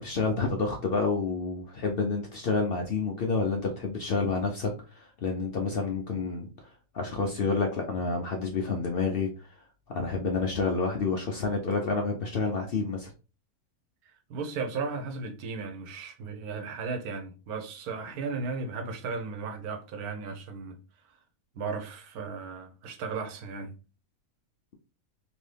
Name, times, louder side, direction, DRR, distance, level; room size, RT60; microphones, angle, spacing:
voice 1, 0.0-9.5 9.9-13.1, left 4 dB, 60° left, 0.6 m, -29 dB
voice 2, 14.3-20.8 21.5-23.7, right 4 dB, 90° right, 1.2 m, -35 dB
3.0 x 2.7 x 3.2 m
omnidirectional pair, 1.5 m